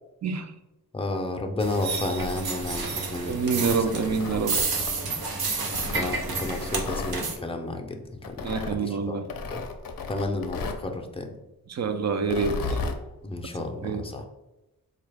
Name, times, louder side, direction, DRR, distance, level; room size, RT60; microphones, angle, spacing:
voice 1, 0.9-3.7 4.1-4.4 5.9-9.2 9.5-9.6 10.1-11.3 13.2-14.2, left 2 dB, 15° left, 3 dB, 0.5 m, -32 dB
sound 1, 1.6-7.4, right 4 dB, 85° right, 0.7 m, -30 dB
voice 2, 3.3-4.6 8.4-9.3 11.7-12.8 13.8-14.0, right 5 dB, 50° right, 8 dB, 0.4 m, -27 dB
Tearing, 3.4-5.2 5.7-7.2 8.2-8.8 9.3-10.9 12.2-13.0, left 3 dB, 70° left, 0.5 m, -34 dB
3.8 x 2.3 x 3.3 m, 0.98 s
wide cardioid pair, 80°, 35 cm